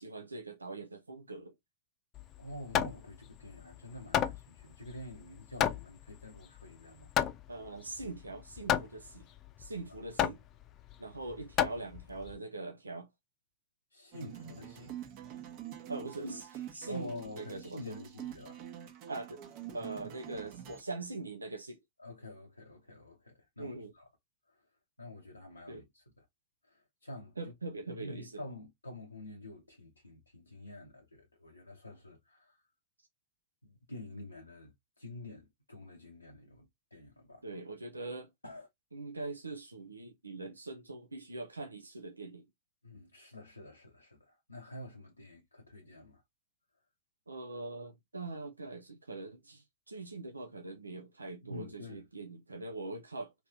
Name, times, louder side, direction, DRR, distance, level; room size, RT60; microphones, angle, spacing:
voice 1, 0.0-1.5 7.5-9.2 9.6-10.4 11.0-13.1 15.9-17.9 19.1-19.4 19.7-21.8 23.6-23.9 25.7-25.8 27.4-28.4 37.4-38.3 38.9-42.5 47.3-53.3, right 3 dB, 85° right, 0.5 m, -42 dB
Hammer, 2.1-12.4, left 10 dB, 40° left, 0.5 m, -34 dB
voice 2, 2.4-7.1 9.9-10.0 13.9-15.0 16.8-18.6 22.0-24.1 24.5-24.7 25.0-26.3 26.6-27.5 27.9-32.7 33.6-37.4 38.4-38.7 42.8-46.2 51.4-52.0, left 1 dB, 85° left, 0.6 m, -48 dB
sound 1, 14.1-20.8, right 10 dB, 50° right, 0.9 m, -46 dB
3.2 x 3.0 x 2.5 m
figure-of-eight pair, 90°, 0 cm